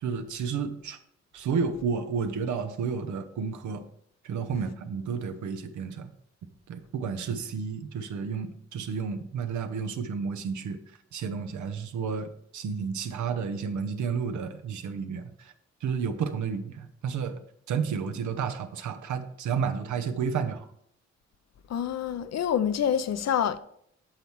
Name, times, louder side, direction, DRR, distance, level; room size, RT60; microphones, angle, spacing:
voice 1, 0.0-1.0 1.3-3.8 4.2-6.1 6.7-10.8 11.1-15.5 15.8-17.4 17.7-20.7, right 6 dB, 85° right, 0.8 m, -31 dB
voice 2, 21.7-23.6, left 9 dB, 65° left, 0.6 m, -27 dB
8.8 x 5.7 x 3.1 m
cardioid pair, 65°, 29 cm